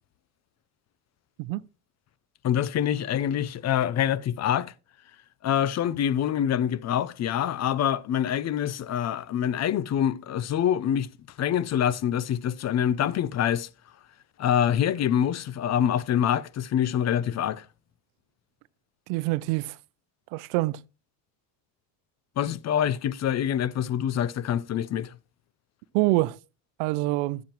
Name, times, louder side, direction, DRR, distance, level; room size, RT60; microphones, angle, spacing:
voice 1, 2.4-4.7 5.4-11.1 11.4-13.7 14.4-17.7 22.4-25.1, left 9 dB, 40° left, 0.6 m, -25 dB
voice 2, 19.1-19.8 20.3-20.8 25.9-26.4 26.8-27.4, right 20 dB, 90° right, 0.6 m, -25 dB
15.5 x 7.3 x 3.0 m
cardioid pair, 120°, 42 cm